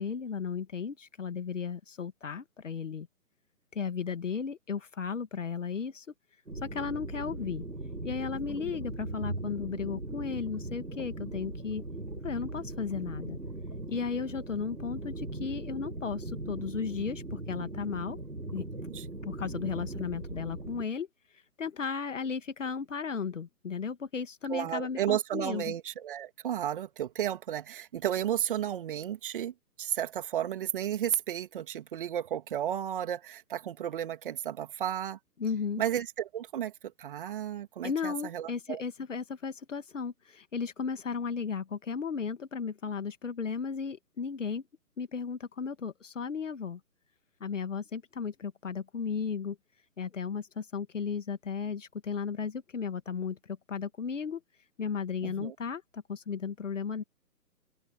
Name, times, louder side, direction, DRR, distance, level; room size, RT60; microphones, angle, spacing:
voice 1, 0.0-3.1 3.7-6.1 6.6-7.7 8.0-11.8 12.2-13.4 13.9-18.2 18.5-18.7 19.2-21.1 21.6-25.7 35.4-35.8 37.8-44.6 45.0-46.8 47.4-49.6 50.0-54.4 54.8-57.0, left 6 dB, 50° left, 2.0 m, -35 dB
sound 1, 6.5-20.8, right 2 dB, 85° right, 4.8 m, -39 dB
voice 2, 24.5-35.2 35.8-36.7 37.0-38.8 55.2-55.5, right 10 dB, 35° right, 3.0 m, -33 dB
open air
figure-of-eight pair, 140°, 47 cm